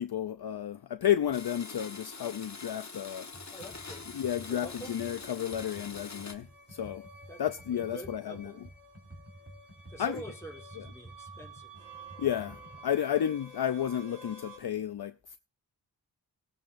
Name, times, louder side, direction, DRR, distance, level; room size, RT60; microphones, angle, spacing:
voice 1, 0.0-3.3 4.1-7.1 7.4-8.5 10.0-10.2 12.2-15.4, left 10 dB, 60° left, 0.5 m, -32 dB
Domestic sounds home sounds, 1.3-6.3, left 4 dB, 40° left, 1.2 m, -45 dB
Computer keyboard, 3.3-12.8, right 1 dB, 30° right, 3.3 m, -51 dB
voice 2, 3.5-5.0 7.3-7.4 7.7-8.7 9.9-11.9, right 1 dB, 5° left, 2.4 m, -47 dB
sound 1, 4.1-14.6, right 1 dB, 50° right, 5.0 m, -52 dB
19.0 x 8.7 x 2.6 m
wide cardioid pair, 70°, 42 cm